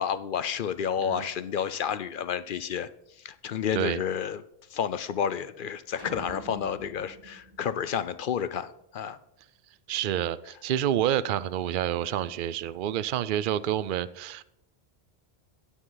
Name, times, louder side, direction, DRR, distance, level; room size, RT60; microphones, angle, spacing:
voice 1, 0.0-2.9 3.2-4.4 4.7-9.2, left 8 dB, 60° left, 13 dB, 0.7 m, -30 dB
sound 1, 6.0-8.5, right 1 dB, 20° right, 1.9 m, -45 dB
voice 2, 9.9-14.4, right 11 dB, 60° right, 17 dB, 0.7 m, -28 dB
16.5 x 6.2 x 3.9 m, 0.79 s
omnidirectional pair, 1.1 m